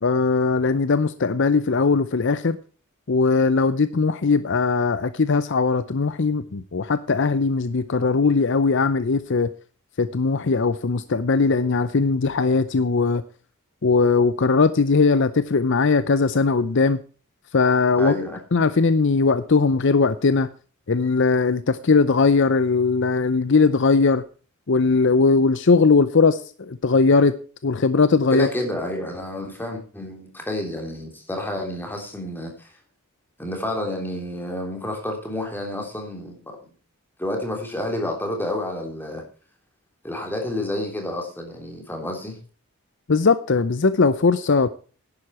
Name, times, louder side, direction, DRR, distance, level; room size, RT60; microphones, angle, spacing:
voice 1, 0.0-2.6 3.1-9.5 10.0-13.2 13.8-17.0 17.5-18.2 18.5-20.5 20.9-24.2 24.7-27.4 27.6-28.5 43.1-44.7, left 4 dB, 55° left, 14 dB, 0.6 m, -19 dB
voice 2, 18.0-18.4 28.3-32.7 33.4-36.6 37.2-39.2 40.0-42.4, left 1 dB, 10° left, 2 dB, 3.3 m, -29 dB
11.0 x 9.7 x 4.3 m, 0.38 s
head